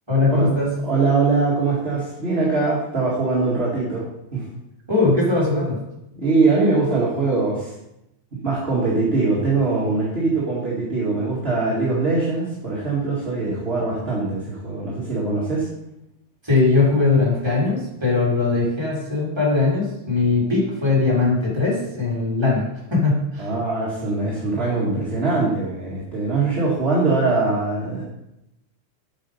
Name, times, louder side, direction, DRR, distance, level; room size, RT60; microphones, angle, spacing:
voice 1, 0.1-0.7 4.9-5.8 16.4-23.5, left 3 dB, 10° right, -7 dB, 3.8 m, -20 dB
voice 2, 0.8-4.1 4.3-4.4 6.2-7.7 8.4-15.7 23.4-28.1, right 3 dB, 25° right, -7 dB, 1.8 m, -22 dB
8.6 x 7.2 x 5.5 m, 0.87 s
omnidirectional pair, 3.6 m